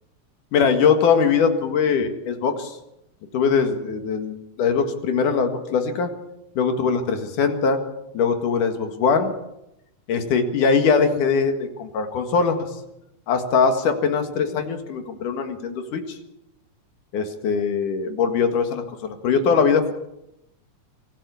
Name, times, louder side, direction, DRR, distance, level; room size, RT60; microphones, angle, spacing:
voice 1, 0.5-2.8 3.3-6.1 6.6-7.8 8.1-9.3 10.1-12.7 13.3-16.2 17.1-19.9, left 5 dB, 80° left, 6 dB, 3.4 m, -21 dB
24.5 x 15.5 x 6.9 m, 0.87 s
omnidirectional pair, 3.6 m